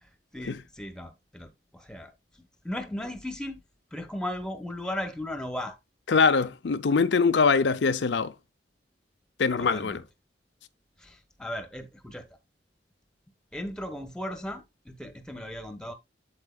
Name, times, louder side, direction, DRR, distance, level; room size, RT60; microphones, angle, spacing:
voice 1, 0.0-2.1 2.4-3.6 3.9-5.8 9.6-10.0 11.0-12.3 13.5-15.9, left 1 dB, 5° left, 1.1 m, -37 dB
voice 2, 6.1-8.3 9.4-10.0, left 5 dB, 75° left, 0.5 m, -23 dB
8.3 x 7.8 x 2.3 m
head